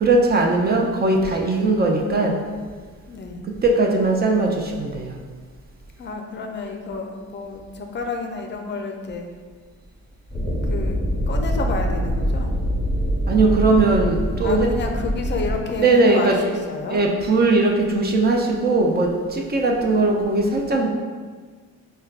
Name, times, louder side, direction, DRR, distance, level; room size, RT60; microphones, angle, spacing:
voice 1, 0.0-2.4 3.6-5.1 13.3-14.7 15.8-16.3 16.9-20.9, right 2 dB, 35° right, 0 dB, 0.4 m, -19 dB
voice 2, 3.1-3.4 6.0-9.3 10.6-11.0 11.3-12.5 14.4-17.0 19.7-20.6, left 3 dB, 35° left, 3 dB, 0.4 m, -30 dB
sound 1, 10.3-15.6, equal, ahead, 1.1 m, -24 dB
4.4 x 2.2 x 2.4 m, 1.5 s
cardioid pair, 90°, 30 cm